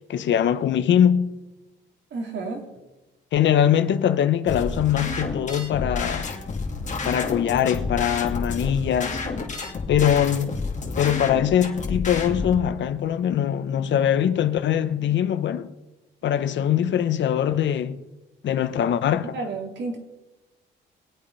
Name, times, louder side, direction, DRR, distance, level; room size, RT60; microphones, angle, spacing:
voice 1, 0.1-1.3 3.3-6.3 7.0-9.2 9.9-10.6 11.0-15.7 16.2-18.0 18.4-19.3, left 9 dB, 65° left, 1.0 m, -22 dB
voice 2, 2.1-2.7 19.2-20.0, right 3 dB, 65° right, 3.3 m, -31 dB
sound 1, 4.5-12.5, left 3 dB, 40° left, 2.6 m, -30 dB
22.5 x 8.5 x 5.6 m
cardioid pair, 90°, 20 cm